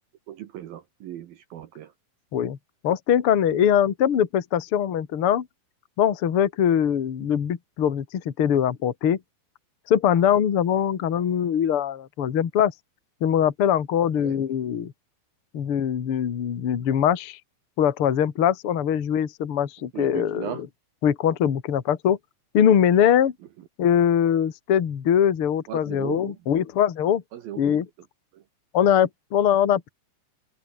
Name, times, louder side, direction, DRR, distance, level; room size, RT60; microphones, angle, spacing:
voice 1, 0.3-1.9 14.2-14.4 19.9-20.6 25.7-26.3 27.3-27.8 28.3-28.4, right 11 dB, 70° right, 2.3 m, -37 dB
voice 2, 2.8-5.5 6.0-9.2 9.9-12.7 13.2-14.9 15.5-17.4 17.8-20.7 21.0-22.2 22.5-23.3 23.8-27.2 27.6-27.9 28.7-29.9, left 9 dB, 60° left, 1.5 m, -22 dB
omnidirectional pair, 5.7 m